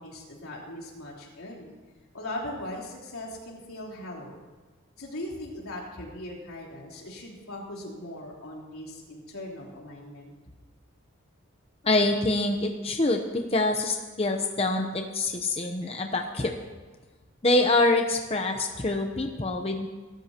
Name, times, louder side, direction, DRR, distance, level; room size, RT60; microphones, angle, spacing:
voice 1, 0.0-1.7 2.1-4.4 5.0-10.3, left 1 dB, 85° left, -4 dB, 3.8 m, -39 dB
voice 2, 11.8-16.5 17.4-19.9, left 2 dB, 30° left, 4 dB, 0.8 m, -25 dB
22.5 x 13.0 x 2.9 m, 1.3 s
head